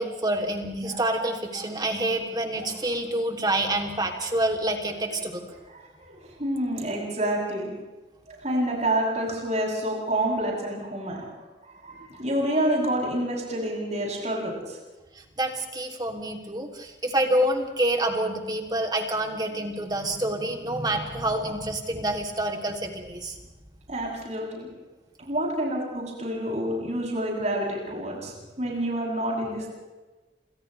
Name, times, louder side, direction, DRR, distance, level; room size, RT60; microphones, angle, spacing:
voice 1, 0.0-5.4 15.4-23.4, right 1 dB, 25° right, 2 dB, 3.0 m, -27 dB
voice 2, 6.0-7.7 8.3-11.3 11.8-14.5 23.9-24.7 25.2-28.3 28.6-29.7, right 1 dB, 40° right, -3 dB, 7.9 m, -28 dB
28.5 x 27.0 x 3.4 m, 1.2 s
head